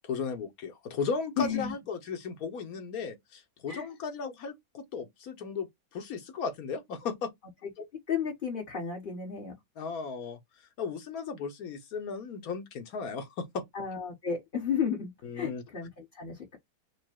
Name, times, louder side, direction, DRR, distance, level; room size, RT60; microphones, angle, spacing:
voice 1, 0.0-5.7 5.9-7.3 9.8-10.4 10.8-13.6 15.2-15.6, left 5 dB, 70° left, 1.4 m, -35 dB
voice 2, 1.4-1.7 3.7-3.9 7.6-7.7 8.1-9.6 13.7-16.6, left 7 dB, 35° left, 1.3 m, -33 dB
4.8 x 2.1 x 4.5 m
omnidirectional pair, 1.6 m